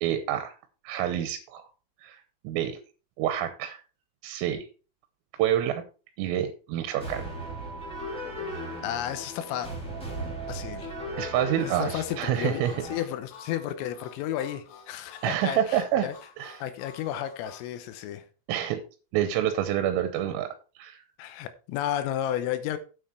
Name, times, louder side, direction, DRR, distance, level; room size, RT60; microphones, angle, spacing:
voice 1, 0.0-0.6 0.8-1.7 2.0-2.2 2.5-2.8 3.2-3.8 4.2-4.7 5.4-5.8 6.2-7.3 11.2-12.7 15.2-16.1 16.4-16.6 18.5-18.8 19.1-21.0, right 11 dB, 85° right, 3.5 m, -27 dB
sound 1, 7.0-13.0, right 1 dB, ahead, 3.4 m, -37 dB
voice 2, 8.8-9.7 10.5-11.0 11.6-16.2 16.6-18.3 21.2-22.8, left 11 dB, 90° left, 3.6 m, -32 dB
Harmonica, 12.6-17.7, left 6 dB, 70° left, 3.7 m, -50 dB
9.2 x 7.5 x 4.5 m
omnidirectional pair, 5.9 m